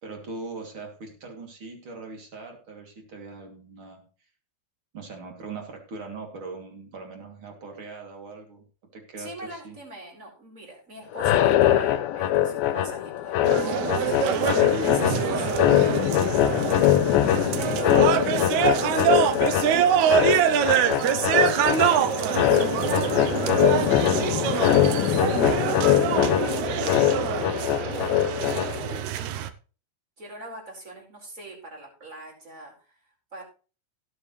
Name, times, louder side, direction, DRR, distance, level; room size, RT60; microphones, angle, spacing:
voice 1, 0.0-4.1 4.9-8.6 8.9-9.7 15.3-16.9, right 3 dB, 35° right, 1 dB, 3.2 m, -41 dB
voice 2, 9.2-16.2 16.5-16.6 17.6-21.0 21.3-26.0 30.2-33.4, right 2 dB, 20° right, -1 dB, 4.9 m, -43 dB
sound 1, 11.1-29.0, left 12 dB, 80° left, 2.5 m, -23 dB
sound 2, 13.5-29.5, right 9 dB, 80° right, 1.6 m, -25 dB
17.5 x 7.9 x 3.2 m, 0.35 s
omnidirectional pair, 4.3 m